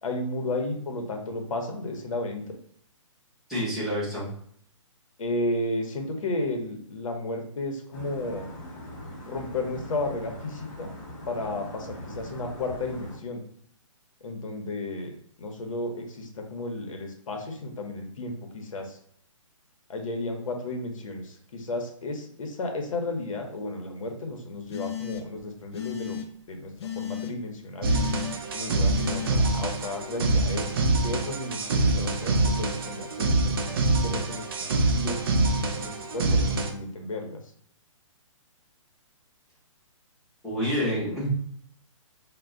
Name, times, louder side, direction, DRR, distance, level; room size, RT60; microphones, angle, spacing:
voice 1, 0.0-2.6 5.2-8.5 9.3-10.9 11.3-13.4 14.2-15.1 15.4-19.0 19.9-26.2 26.5-27.9 28.5-35.3 35.8-37.4, left 2 dB, 75° left, 4 dB, 0.8 m, -33 dB
voice 2, 3.5-4.3 40.4-41.3, equal, ahead, -11 dB, 0.8 m, -28 dB
sound 1, 7.9-13.2, left 1 dB, 35° left, 0.8 m, -42 dB
sound 2, 24.7-25.4 25.7-26.3 26.8-27.3 27.8-28.4 28.9-29.3, left 10 dB, 55° left, 0.4 m, -34 dB
sound 3, 27.8-36.7, right 2 dB, 45° right, 0.4 m, -25 dB
2.2 x 2.1 x 3.6 m, 0.65 s
hypercardioid pair, 160°, 17 cm